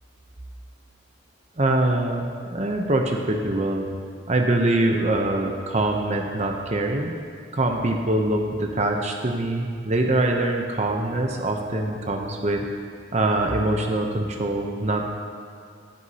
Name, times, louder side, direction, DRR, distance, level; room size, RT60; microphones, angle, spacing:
voice 1, 1.6-3.9 4.3-7.1 7.5-12.6 13.1-15.0, right 2 dB, 35° right, 2 dB, 0.7 m, -23 dB
15.0 x 8.0 x 2.9 m, 2.3 s
head